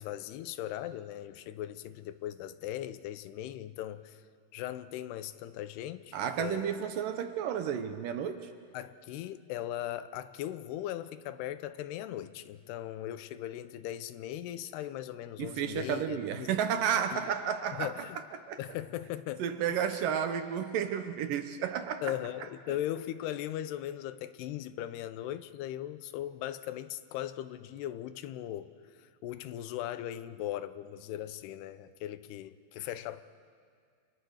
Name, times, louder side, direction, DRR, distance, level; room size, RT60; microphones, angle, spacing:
voice 1, 0.0-4.2 4.5-6.7 8.7-16.5 17.1-17.2 17.7-18.2 18.6-19.4 22.0-28.7 29.0-33.2, left 12 dB, 90° left, 13 dB, 2.9 m, -38 dB
voice 2, 6.1-8.5 15.4-17.9 18.3-18.6 19.4-22.1, right 8 dB, 70° right, 8 dB, 2.4 m, -32 dB
30.0 x 26.5 x 6.4 m, 2.1 s
omnidirectional pair, 4.5 m